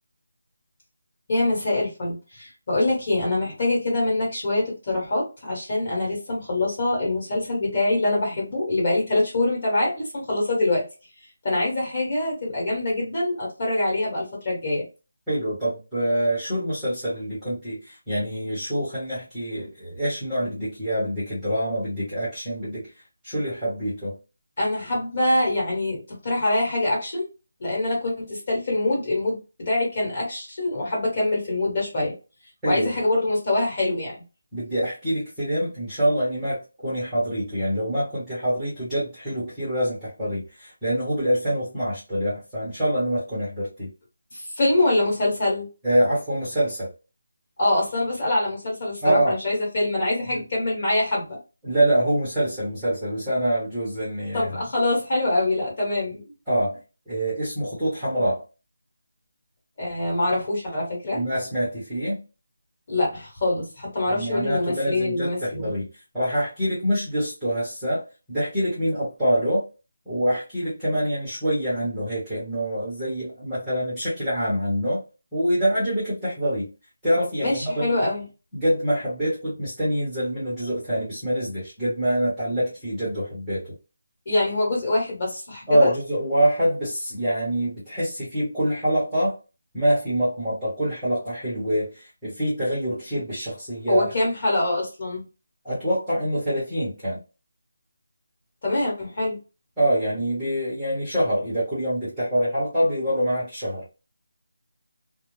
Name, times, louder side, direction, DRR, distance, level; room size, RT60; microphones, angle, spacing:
voice 1, 1.3-10.8 11.4-14.8 24.6-27.3 27.6-32.1 32.6-34.1 44.3-45.7 47.6-51.4 54.3-56.2 59.8-61.2 62.9-65.7 77.4-78.2 84.2-85.9 93.9-95.2 98.6-99.4, left 2 dB, 25° left, 1.2 m, -24 dB
voice 2, 15.3-22.9 23.2-24.2 32.6-32.9 34.5-43.9 45.8-46.9 49.0-49.3 50.3-50.4 51.6-54.5 56.5-56.8 57.1-58.4 61.1-62.2 64.1-65.9 66.1-69.7 70.1-75.0 75.3-76.7 77.0-78.0 78.5-83.7 85.7-89.4 89.7-94.1 95.6-97.2 99.8-103.8, equal, 5° right, 0.8 m, -25 dB
2.2 x 2.0 x 3.0 m
figure-of-eight pair, 180°, 0 cm